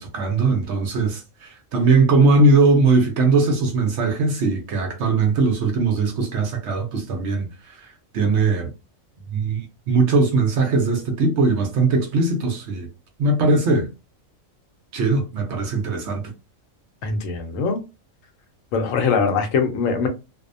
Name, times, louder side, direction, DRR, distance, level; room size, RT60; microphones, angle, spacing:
voice 1, 0.0-7.9 8.1-8.7 9.3-12.9 13.2-13.9 14.9-16.3, right 3 dB, 65° right, 0.9 m, -20 dB
voice 2, 17.0-17.8 18.7-20.1, left 5 dB, 75° left, 1.0 m, -22 dB
2.6 x 2.0 x 2.5 m
omnidirectional pair, 1.4 m